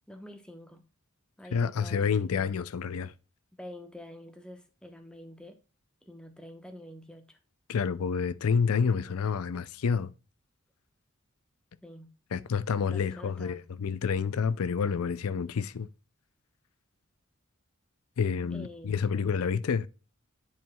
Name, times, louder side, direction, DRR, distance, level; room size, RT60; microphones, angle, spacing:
voice 1, 0.1-0.8 1.4-2.5 3.6-5.6 6.0-7.4 11.8-12.1 12.9-13.7 18.5-18.9, left 1 dB, 5° left, 0.9 m, -47 dB
voice 2, 1.5-3.1 7.7-10.1 12.3-15.9 18.2-19.9, left 6 dB, 90° left, 0.5 m, -28 dB
10.5 x 4.5 x 2.3 m
head